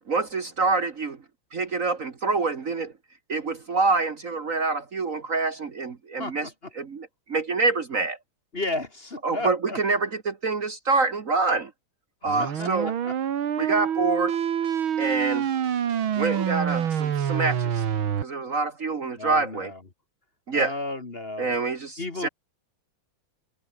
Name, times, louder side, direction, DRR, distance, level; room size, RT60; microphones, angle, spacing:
voice 1, 0.1-1.2 1.5-2.9 3.3-8.2 9.2-11.7 12.2-12.9 13.6-14.4 15.0-15.5 16.2-17.8 18.2-19.7 20.5-20.8 21.4-22.3, right 3 dB, 45° right, 1.7 m, -26 dB
voice 2, 8.5-9.8 12.6-12.7 13.0-13.1 19.2-19.7 20.5-21.5 22.0-22.3, left 2 dB, 30° left, 2.2 m, -32 dB
sound 1, 12.3-18.2, right 9 dB, 85° right, 2.4 m, -26 dB
open air
omnidirectional pair, 2.2 m